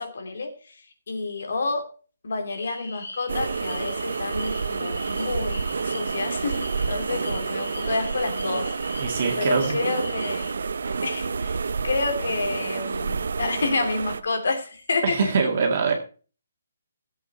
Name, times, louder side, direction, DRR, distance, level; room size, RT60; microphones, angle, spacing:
voice 1, 0.0-1.9 2.2-9.1 9.4-11.6 11.8-15.5, left 3 dB, 65° left, 6 dB, 2.9 m, -29 dB
sound 1, 2.5-10.5, left 2 dB, 85° left, 3.6 m, -40 dB
sound 2, 3.3-14.2, right 5 dB, 70° right, 0.7 m, -29 dB
voice 2, 9.0-9.8 15.0-15.9, right 5 dB, 40° right, 2 dB, 2.1 m, -23 dB
15.0 x 8.0 x 4.2 m, 0.38 s
hypercardioid pair, 175°, 0 cm